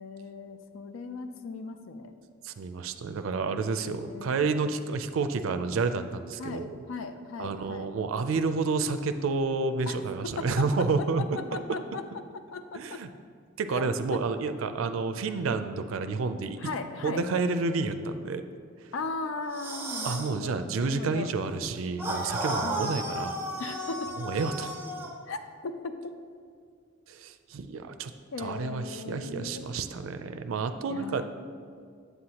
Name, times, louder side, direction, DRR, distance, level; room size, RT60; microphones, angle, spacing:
voice 1, 0.0-2.1 3.9-4.5 6.4-7.9 9.9-10.0 10.2-13.0 13.7-13.8 14.1-14.2 16.6-17.2 18.9-21.3 22.6-23.0 23.6-24.1 25.3-25.9 28.3-29.8 30.9-31.3, left 4 dB, 80° left, 8 dB, 0.4 m, -38 dB
voice 2, 2.4-6.8 7.4-11.4 12.7-13.1 13.6-16.7 17.0-18.4 20.0-23.3 24.2-24.8 27.1-28.1 28.4-31.2, right 4 dB, 85° right, 9 dB, 0.4 m, -30 dB
sound 1, 19.5-20.3 22.0-25.1, right 1 dB, 10° right, 0.6 m, -33 dB
8.0 x 7.8 x 2.9 m, 2.2 s
head